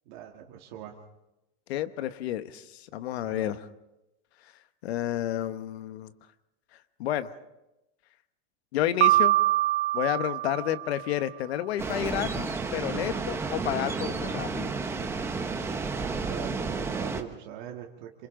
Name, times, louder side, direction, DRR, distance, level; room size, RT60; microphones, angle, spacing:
voice 1, 0.1-1.0 3.2-3.5 15.9-18.3, right 10 dB, 50° right, 1 dB, 1.9 m, -42 dB
voice 2, 1.7-3.7 4.4-4.5 4.8-6.1 7.0-7.3 8.7-9.4 9.9-14.7, left 12 dB, 80° left, 11 dB, 1.3 m, -30 dB
Piano, 9.0-11.2, right 16 dB, 80° right, 0.8 m, -24 dB
sound 1, 11.8-17.2, right 4 dB, 10° right, 0.8 m, -31 dB
27.5 x 26.5 x 3.8 m, 0.94 s
supercardioid pair, 170°, 31 cm